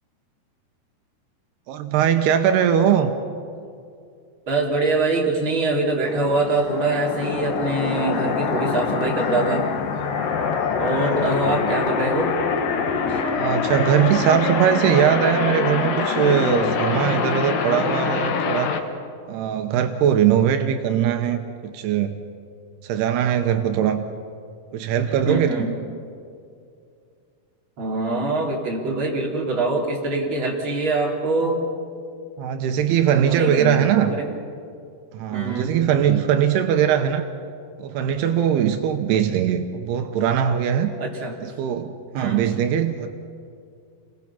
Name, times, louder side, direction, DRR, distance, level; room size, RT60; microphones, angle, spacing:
voice 1, 1.7-3.1 11.1-11.3 13.3-18.7 19.3-22.2 22.8-24.0 24.7-25.7 32.4-34.2 35.1-37.3 37.8-40.9 41.4-43.1, right 9 dB, 85° right, 6 dB, 3.0 m, -21 dB
voice 2, 4.5-9.6 10.8-12.4 13.1-13.2 25.2-25.7 27.8-31.7 33.2-34.4 35.3-35.7 41.0-41.4 42.1-42.4, right 2 dB, 30° right, -2 dB, 3.8 m, -24 dB
sound 1, 6.1-18.8, left 6 dB, 65° left, 2.8 m, -25 dB
29.5 x 21.5 x 5.8 m, 2.4 s
omnidirectional pair, 4.7 m